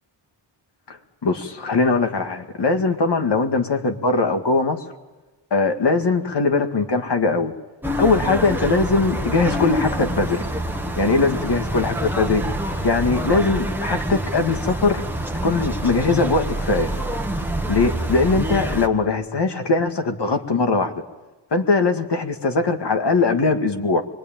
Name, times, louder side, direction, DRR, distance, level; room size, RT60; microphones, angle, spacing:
voice 1, 1.2-4.8 5.5-7.5 8.0-10.4 11.0-12.5 12.8-15.0 15.4-16.9 17.7-21.0 21.5-24.0, left 3 dB, 60° left, 5 dB, 2.1 m, -20 dB
sound 1, 7.8-18.9, right 1 dB, 5° right, 1.3 m, -26 dB
24.0 x 22.0 x 9.1 m, 1.2 s
wide cardioid pair, 135°, 48 cm